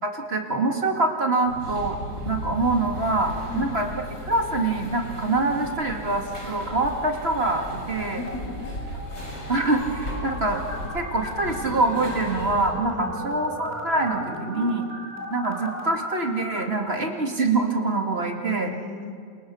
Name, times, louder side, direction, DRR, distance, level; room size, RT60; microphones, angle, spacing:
voice 1, 0.0-2.0 2.3-3.9 4.2-8.2 9.5-10.6 10.9-14.8 15.3-18.7, right 2 dB, 35° right, 2 dB, 2.6 m, -25 dB
sound 1, 1.4-12.7, equal, 45° left, 6.4 m, -36 dB
sound 2, 7.4-8.3 8.6-16.6, equal, 10° left, 4.0 m, -37 dB
voice 2, 8.1-8.9 12.9-13.1 18.5-19.1, left 5 dB, 70° left, 3 dB, 3.1 m, -36 dB
28.5 x 28.0 x 6.4 m, 2.2 s
omnidirectional pair, 2.0 m